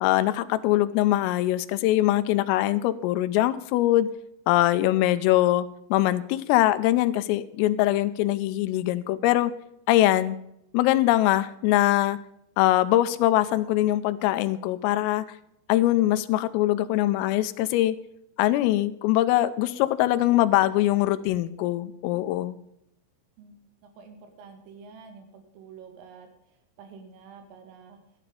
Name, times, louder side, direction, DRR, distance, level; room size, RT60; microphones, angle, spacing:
voice 1, 0.0-4.1 4.5-9.5 9.9-10.4 10.7-12.2 12.6-15.2 15.7-18.0 18.4-22.6, left 15 dB, 85° left, 13 dB, 3.3 m, -22 dB
voice 2, 23.4-28.0, right 5 dB, 75° right, 6 dB, 4.5 m, -48 dB
13.5 x 10.5 x 5.3 m, 0.76 s
omnidirectional pair, 5.9 m